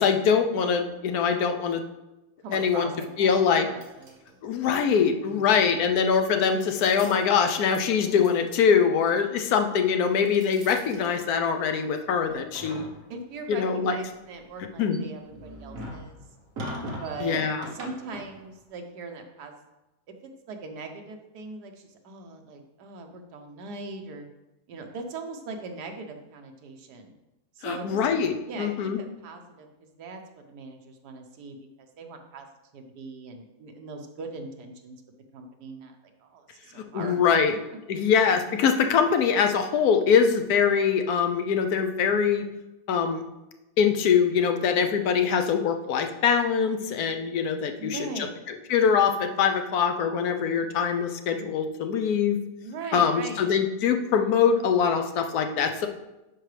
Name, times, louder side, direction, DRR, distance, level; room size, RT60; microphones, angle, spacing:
voice 1, 0.0-1.8 2.5-2.9 3.2-3.7 4.4-12.8 13.5-14.0 14.8-15.0 17.2-17.6 27.6-29.0 36.8-37.5 37.9-42.4 42.9-43.2 43.8-52.4 52.9-55.9, left 6 dB, 70° left, 6 dB, 1.1 m, -23 dB
voice 2, 2.4-3.3 3.6-5.0 5.2-5.7 13.1-16.1 16.8-17.4 17.7-19.5 20.1-24.3 24.7-27.1 27.5-28.0 28.5-32.5 32.7-35.0 35.3-35.9 36.2-37.2 47.8-48.4 52.6-53.5, right 3 dB, 80° right, 4 dB, 1.4 m, -40 dB
sound 1, 2.5-3.4 3.8-4.5 5.7-5.9 6.4-7.3 7.6-7.8 8.1-8.5 10.0-11.8 12.2-13.4 14.0-18.6, equal, 60° right, 1.4 m, -42 dB
10.5 x 4.6 x 3.3 m, 0.98 s
omnidirectional pair, 1.7 m